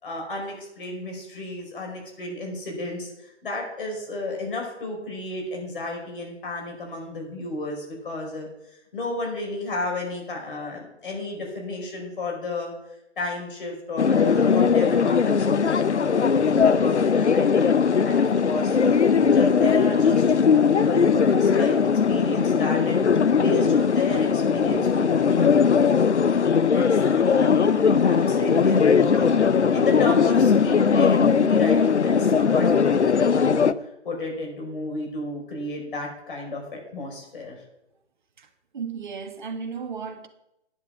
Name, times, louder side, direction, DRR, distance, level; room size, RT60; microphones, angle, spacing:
voice 1, 0.0-8.5 8.9-12.7 13.2-17.7 18.0-21.8 22.1-23.0 23.4-26.3 26.7-27.6 28.0-29.4 29.7-33.7 34.0-37.6, left 2 dB, 50° left, 5.2 m, -32 dB
sound 1, 14.0-33.7, left 6 dB, 70° left, 0.7 m, -19 dB
voice 2, 38.7-40.3, right 5 dB, 40° right, 1.5 m, -34 dB
11.5 x 10.0 x 5.8 m
figure-of-eight pair, 140°, 36 cm